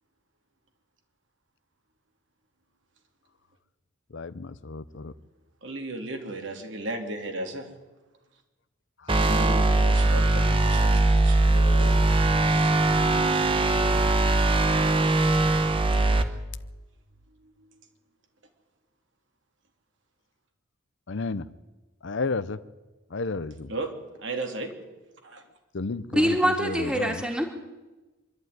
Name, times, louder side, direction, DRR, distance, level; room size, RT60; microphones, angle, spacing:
voice 1, 4.1-5.1 9.0-9.2 10.8-11.2 21.1-21.5 22.0-22.6 23.1-23.7 25.7-27.2, left 3 dB, 60° left, 0.7 m, -32 dB
voice 2, 5.6-7.7 9.2-12.1 17.4-17.8 23.7-23.9 24.2-24.7 25.2-25.4, right 1 dB, 60° right, 3.0 m, -35 dB
sound 1, 9.1-16.2, right 2 dB, 25° right, 1.2 m, -21 dB
voice 3, 26.1-27.5, equal, 5° right, 2.5 m, -24 dB
26.0 x 12.0 x 9.5 m
head